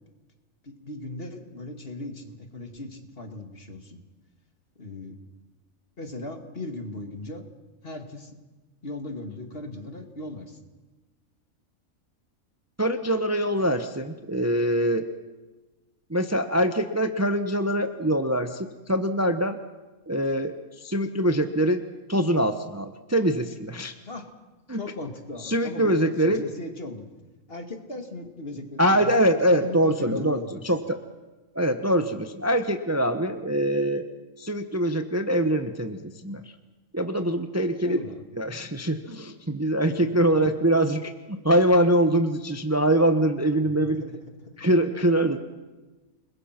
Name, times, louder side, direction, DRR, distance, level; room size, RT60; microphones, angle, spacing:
voice 1, 0.6-4.0 4.8-5.2 6.0-7.5 7.8-8.3 8.8-10.6 24.1-24.2 24.7-27.1 27.5-29.2 29.5-30.6 37.8-38.2 39.9-40.0 43.6-44.6, left 2 dB, 45° left, 6 dB, 2.4 m, -38 dB
voice 2, 12.8-15.1 16.1-19.6 20.1-23.9 24.7-24.8 25.4-26.4 28.8-31.0 31.5-34.0 34.4-36.4 36.9-38.0 38.4-44.0 44.6-45.4, right 1 dB, 15° right, 8 dB, 0.9 m, -24 dB
29.0 x 21.0 x 6.0 m, 1.2 s
omnidirectional pair, 1.4 m